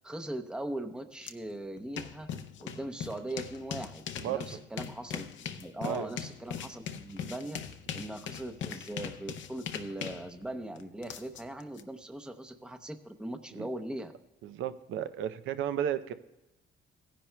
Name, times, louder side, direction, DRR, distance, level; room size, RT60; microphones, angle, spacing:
voice 1, 0.0-2.3 2.6-7.6 7.9-14.1, right 1 dB, 5° right, 7 dB, 0.7 m, -40 dB
sound 1, 1.2-1.3 1.6-11.8, left 8 dB, 70° left, 0.7 m, -40 dB
voice 2, 5.8-6.1 13.6-13.7 14.4-16.1, right 9 dB, 75° right, 11 dB, 0.6 m, -33 dB
16.5 x 10.0 x 2.2 m, 0.99 s
cardioid pair, 90°, 20 cm